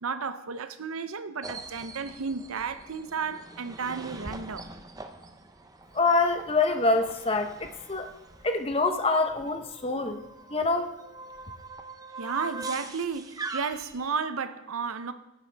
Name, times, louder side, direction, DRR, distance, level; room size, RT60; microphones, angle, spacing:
voice 1, 0.0-4.7 12.2-15.1, right 5 dB, 80° right, 0.7 m, -33 dB
sound 1, 1.4-14.1, right 3 dB, 15° right, 0.6 m, -43 dB
voice 2, 5.9-8.1 8.4-10.2 10.5-10.9, left 3 dB, 25° left, 0.8 m, -25 dB
14.5 x 9.8 x 3.4 m
head